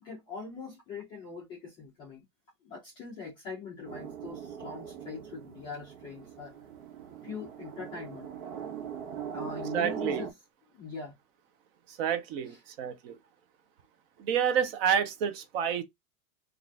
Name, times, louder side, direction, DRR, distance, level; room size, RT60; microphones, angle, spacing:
voice 1, 0.0-2.2 2.6-6.5 7.2-8.3 9.3-10.3 10.7-11.1 12.4-12.6, left 4 dB, 10° left, 0.3 m, -42 dB
sound 1, 3.9-10.3, right 8 dB, 70° right, 0.9 m, -40 dB
voice 2, 9.7-10.2 12.0-13.2 14.2-15.8, right 8 dB, 40° right, 0.6 m, -29 dB
2.5 x 2.4 x 3.1 m
supercardioid pair, 150°, 44 cm